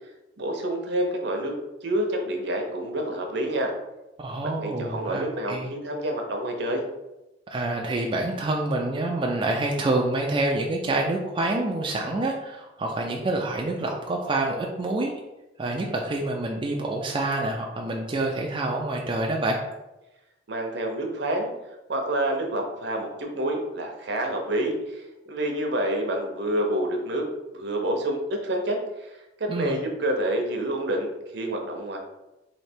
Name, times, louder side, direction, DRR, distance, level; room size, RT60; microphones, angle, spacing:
voice 1, 0.4-1.5 1.8-3.7 4.4-6.8 20.5-21.5 21.9-27.3 27.5-32.0, right 1 dB, 65° right, 3 dB, 0.7 m, -28 dB
voice 2, 4.2-5.7 7.5-15.1 15.6-19.6 29.5-29.8, right 2 dB, 25° right, 0 dB, 0.3 m, -27 dB
3.2 x 2.8 x 4.4 m, 0.99 s
head